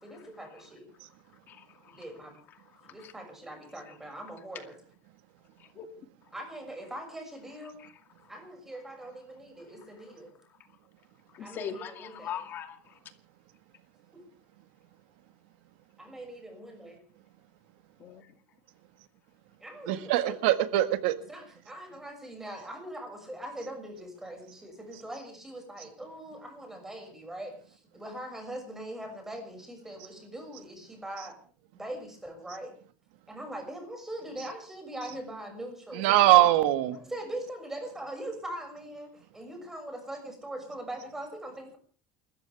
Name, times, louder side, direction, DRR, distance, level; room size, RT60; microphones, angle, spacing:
voice 1, 0.0-0.9 1.8-2.4 2.8-4.8 6.3-7.8 8.3-10.3 11.4-12.4 16.0-17.0 19.6-20.5 21.3-31.3 31.7-32.7 33.3-36.5 36.9-41.8, right 1 dB, 5° right, 6.5 m, -41 dB
voice 2, 1.5-2.0 2.8-3.1 5.6-5.9 7.8-7.9 8.2-8.3 11.3-13.0 18.0-18.3, left 8 dB, 40° left, 2.4 m, -41 dB
voice 3, 19.9-21.1 36.0-37.0, right 15 dB, 85° right, 1.7 m, -22 dB
29.0 x 14.0 x 3.5 m
cardioid pair, 145°, 5 cm